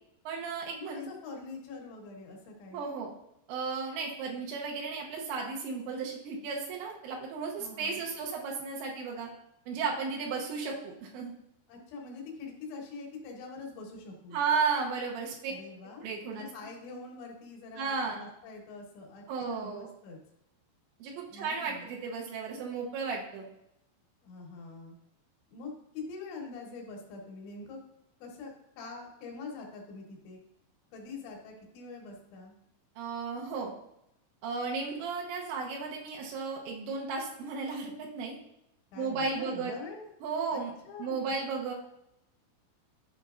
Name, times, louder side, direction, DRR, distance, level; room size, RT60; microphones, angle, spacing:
voice 1, 0.2-1.1 2.7-3.1 3.5-9.3 9.7-11.3 14.3-15.5 16.0-16.5 17.8-18.3 19.3-19.9 21.0-23.5 33.0-33.7 34.4-38.4 39.0-39.7 40.2-40.7 41.0-41.8, right 5 dB, 85° right, -1 dB, 3.3 m, -34 dB
voice 2, 0.8-2.9 7.6-8.0 11.7-14.4 15.5-20.2 21.3-21.9 24.2-25.0 25.5-27.8 28.2-30.4 30.9-32.5 38.9-40.1 40.5-41.3, left 4 dB, 80° left, 0 dB, 3.7 m, -44 dB
12.5 x 5.2 x 2.5 m, 0.82 s
omnidirectional pair, 5.2 m